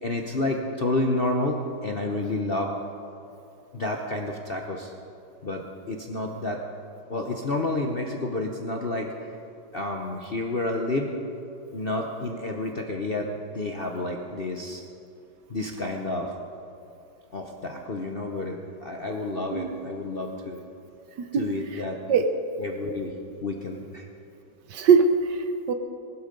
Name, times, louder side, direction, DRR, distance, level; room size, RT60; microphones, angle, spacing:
voice 1, 0.0-2.7 3.7-4.9 5.4-6.6 7.1-9.1 9.7-11.1 11.7-14.8 15.5-16.3 17.3-20.6 21.3-22.0 22.6-23.1 23.4-24.1, left 2 dB, 45° left, 2 dB, 0.8 m, -30 dB
voice 2, 19.5-19.8 21.3-21.4 21.7-21.8 22.1-22.3 24.7-25.7, right 6 dB, 65° right, 7 dB, 1.5 m, -21 dB
19.0 x 12.5 x 5.2 m, 2.6 s
omnidirectional pair, 2.1 m